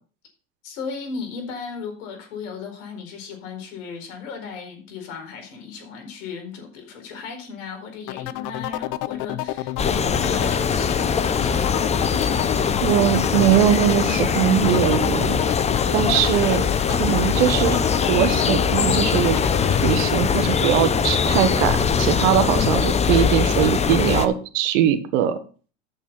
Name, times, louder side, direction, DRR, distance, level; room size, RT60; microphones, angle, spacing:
voice 1, 0.6-11.8 22.5-22.9, left 5 dB, 70° left, 3 dB, 4.8 m, -36 dB
sound 1, 8.1-20.1, left 16 dB, 55° left, 0.7 m, -31 dB
sound 2, 9.8-24.3, left 6 dB, 15° left, 0.7 m, -21 dB
voice 2, 12.8-15.4 15.9-16.6 17.0-17.8 18.1-19.4 19.8-25.4, right 10 dB, 70° right, 9 dB, 1.6 m, -21 dB
sound 3, 16.8-22.8, right 3 dB, 45° right, 2.4 m, -41 dB
8.8 x 6.9 x 5.7 m, 0.39 s
supercardioid pair, 120°, 38 cm